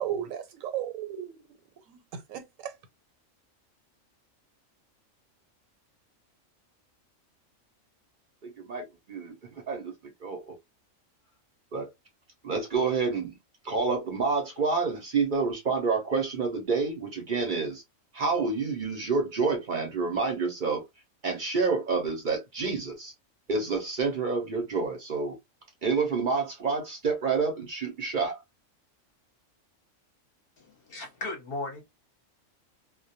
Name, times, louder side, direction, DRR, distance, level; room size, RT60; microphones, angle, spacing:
voice 1, 0.0-1.3 1.9-2.7, right 10 dB, 85° right, 1.0 m, -34 dB
voice 2, 8.4-9.9 10.2-10.5 11.7-11.9 12.4-13.4 13.6-17.8 18.1-20.8 21.2-23.1 23.5-25.4 25.8-28.4, right 4 dB, 50° right, 0.6 m, -28 dB
voice 3, 30.6-31.8, left 2 dB, 55° left, 0.8 m, -36 dB
2.2 x 2.1 x 2.7 m
omnidirectional pair, 1.4 m